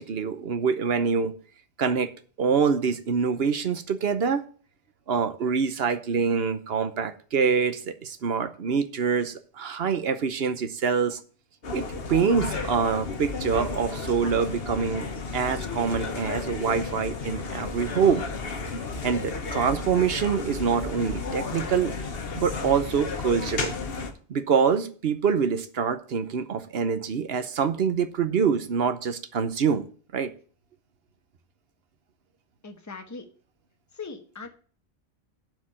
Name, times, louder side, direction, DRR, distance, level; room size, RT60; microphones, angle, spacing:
voice 1, 0.0-1.3 1.8-2.1 2.4-4.4 5.1-11.2 11.7-15.1 15.3-18.3 19.0-21.9 22.3-23.7 24.3-29.8 30.1-30.3, right 6 dB, 65° right, 11 dB, 1.0 m, -25 dB
sound 1, 11.6-24.1, left 4 dB, 65° left, 1.3 m, -33 dB
voice 2, 32.6-33.3 34.0-34.5, left 4 dB, 15° left, 5 dB, 1.0 m, -39 dB
8.2 x 4.9 x 7.5 m, 0.41 s
omnidirectional pair, 1.1 m